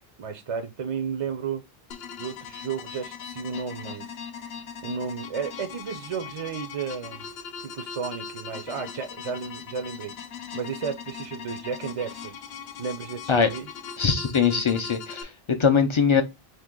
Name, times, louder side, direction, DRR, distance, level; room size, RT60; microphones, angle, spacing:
voice 1, 0.2-1.6 2.2-4.1 4.8-7.3 7.6-10.1 10.5-12.4 12.8-13.7, right 6 dB, 50° right, 0.4 m, -33 dB
sound 1, 1.9-15.2, left 7 dB, 80° left, 0.8 m, -40 dB
voice 2, 14.0-16.2, left 6 dB, 55° left, 0.3 m, -22 dB
2.8 x 2.7 x 3.6 m
omnidirectional pair, 1.0 m